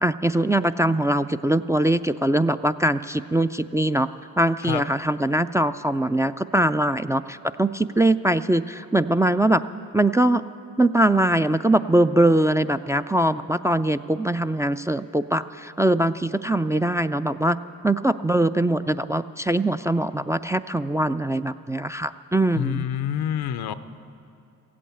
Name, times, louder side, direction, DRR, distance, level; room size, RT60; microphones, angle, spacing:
voice 1, 0.0-4.1 4.4-9.6 9.9-10.4 10.8-17.6 17.8-22.9, right 1 dB, 10° right, 9 dB, 0.3 m, -22 dB
voice 2, 22.5-23.7, left 10 dB, 80° left, 13 dB, 0.6 m, -27 dB
15.0 x 8.6 x 8.7 m, 2.5 s
supercardioid pair, 45°, 37 cm